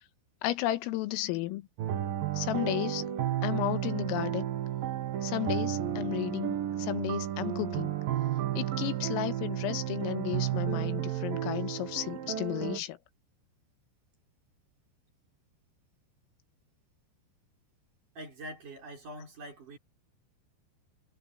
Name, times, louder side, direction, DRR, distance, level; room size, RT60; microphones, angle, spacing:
voice 1, 0.4-1.7 2.4-3.1 3.4-4.5 5.2-7.9 8.6-13.0, left 15 dB, 85° left, 3.8 m, -33 dB
sound 1, 1.8-12.8, right 11 dB, 60° right, 2.6 m, -32 dB
voice 2, 18.1-19.8, right 1 dB, 40° right, 6.7 m, -44 dB
omnidirectional pair, 5.9 m